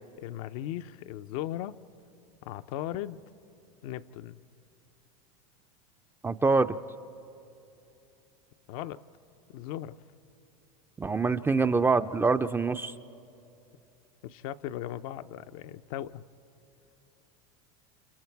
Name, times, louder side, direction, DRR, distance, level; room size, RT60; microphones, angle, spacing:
voice 1, 0.2-1.8 2.4-3.2 3.8-4.4 8.7-9.0 9.5-10.0 14.2-16.2, left 12 dB, 70° left, 10 dB, 0.6 m, -37 dB
voice 2, 6.2-6.8 11.0-12.9, right 4 dB, 10° right, 10 dB, 0.4 m, -25 dB
30.0 x 27.5 x 4.6 m, 2.8 s
supercardioid pair, 105°, 19 cm